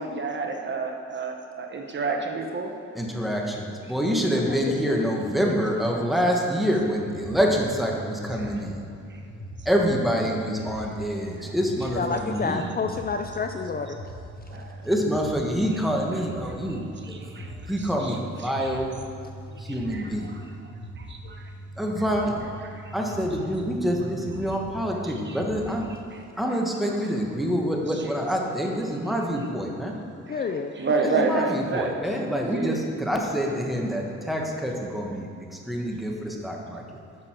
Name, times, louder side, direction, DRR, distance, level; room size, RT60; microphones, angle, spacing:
voice 1, 0.0-2.7 8.3-8.6 9.1-9.2 11.4-11.6 14.5-14.9 16.1-16.2 16.7-18.8 19.5-20.7 21.0-21.5 22.4-23.2 25.0-25.4 26.1-26.2 26.9-27.0 27.9-28.1 30.3-30.4 30.8-31.9 32.5-32.8, right 4 dB, 40° right, 3 dB, 1.1 m, -31 dB
voice 2, 2.9-8.8 9.6-12.6 14.8-16.8 17.1-17.2 17.7-18.9 19.6-20.3 21.8-22.4 22.9-25.9 26.4-29.9 31.0-36.8, equal, ahead, 0 dB, 1.4 m, -26 dB
sound 1, 6.9-25.9, equal, 75° right, 2.5 m, -41 dB
voice 3, 11.9-14.0 14.5-14.6 30.3-30.8, left 5 dB, 30° left, 6 dB, 0.5 m, -29 dB
11.0 x 6.5 x 4.5 m, 2.5 s
cardioid pair, 90°, 30 cm